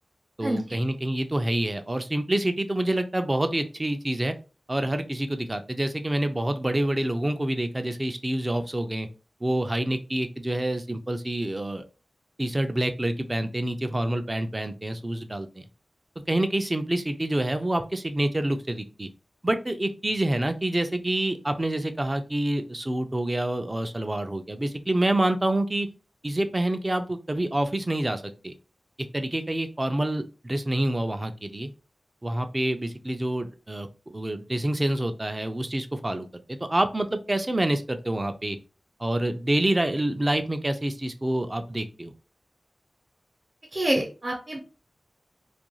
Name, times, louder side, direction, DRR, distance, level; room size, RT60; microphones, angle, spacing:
voice 1, 0.4-4.3 4.7-9.1 9.4-11.8 12.4-15.6 16.3-19.1 19.4-25.9 26.2-28.5 29.0-31.7 32.2-38.6 39.0-42.1, right 1 dB, 25° right, 8 dB, 0.4 m, -27 dB
voice 2, 43.7-44.6, right 1 dB, 40° right, -1 dB, 0.8 m, -26 dB
2.4 x 2.3 x 2.9 m, 0.33 s
wide cardioid pair, 70°, 0 cm